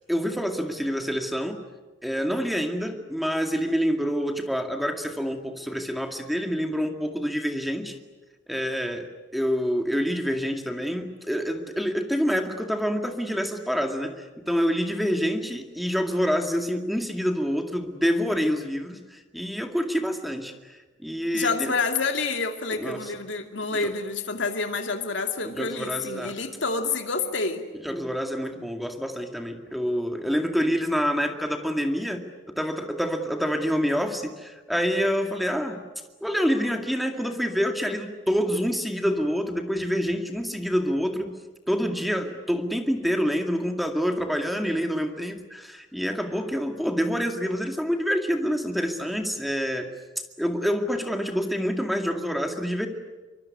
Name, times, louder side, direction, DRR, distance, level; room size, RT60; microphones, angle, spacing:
voice 1, 0.1-1.6 2.0-8.0 8.5-21.7 22.8-23.1 23.8-23.9 25.4-26.3 27.8-35.8 36.2-41.3 41.7-49.9 50.4-52.9, equal, ahead, 5 dB, 2.1 m, -27 dB
voice 2, 21.3-27.7, left 4 dB, 70° left, 5 dB, 2.5 m, -28 dB
25.0 x 24.0 x 9.6 m, 1.2 s
head